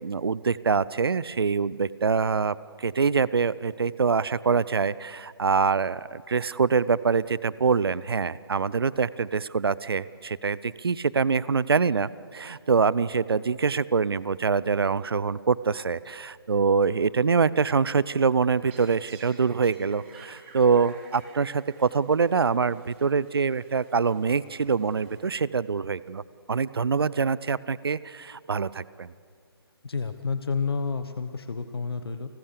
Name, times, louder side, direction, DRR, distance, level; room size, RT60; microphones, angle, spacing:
voice 1, 0.0-26.2 26.5-29.1, right 5 dB, 65° right, 19 dB, 0.7 m, -25 dB
sound 1, 18.3-25.7, right 5 dB, 30° right, 3.5 m, -53 dB
voice 2, 29.8-32.3, left 5 dB, 70° left, 10 dB, 1.2 m, -30 dB
29.5 x 19.0 x 6.8 m, 2.1 s
figure-of-eight pair, 140°, 13 cm